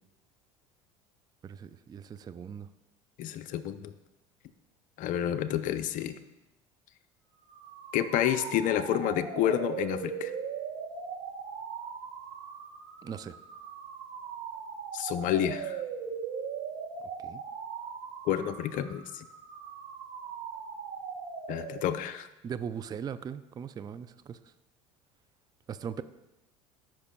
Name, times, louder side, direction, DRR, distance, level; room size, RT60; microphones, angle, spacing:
voice 1, 1.4-2.7 13.0-13.3 17.2-17.4 22.4-24.4 25.7-26.0, right 7 dB, 25° right, 13 dB, 0.4 m, -39 dB
voice 2, 3.2-3.9 5.0-6.2 7.9-10.3 14.9-15.8 18.3-19.3 21.5-22.3, left 10 dB, 55° left, 11 dB, 0.5 m, -29 dB
sound 1, 7.4-22.1, right 6 dB, 60° right, 1.5 m, -40 dB
13.5 x 5.9 x 2.2 m, 0.97 s
hypercardioid pair, 75°, 16 cm